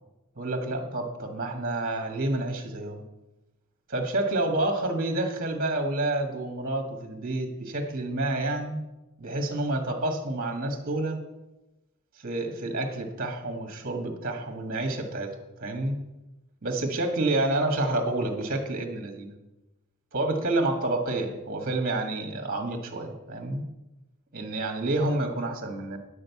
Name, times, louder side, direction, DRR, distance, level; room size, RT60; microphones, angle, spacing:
voice 1, 0.4-3.1 3.9-8.8 9.2-11.2 12.2-15.3 15.6-16.0 16.6-19.4 20.1-23.6 24.3-26.0, right 2 dB, 40° right, 4 dB, 1.6 m, -29 dB
10.0 x 6.6 x 8.2 m, 1.0 s
head